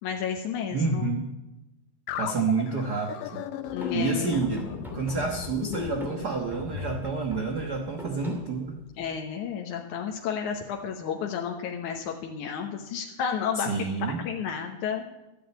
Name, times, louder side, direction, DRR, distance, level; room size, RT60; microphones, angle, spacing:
voice 1, 0.0-1.1 3.7-4.5 9.0-13.7 14.3-15.0, left 7 dB, 70° left, 1 dB, 2.4 m, -32 dB
voice 2, 0.7-1.3 2.2-3.4 3.9-4.7 4.9-8.9 13.5-14.2, right 4 dB, 60° right, 3 dB, 1.0 m, -29 dB
sound 1, 2.1-7.0, left 12 dB, 90° left, 2.4 m, -36 dB
sound 2, 3.6-9.2, equal, ahead, 2.0 m, -42 dB
14.0 x 10.0 x 7.9 m, 0.98 s
omnidirectional pair, 3.7 m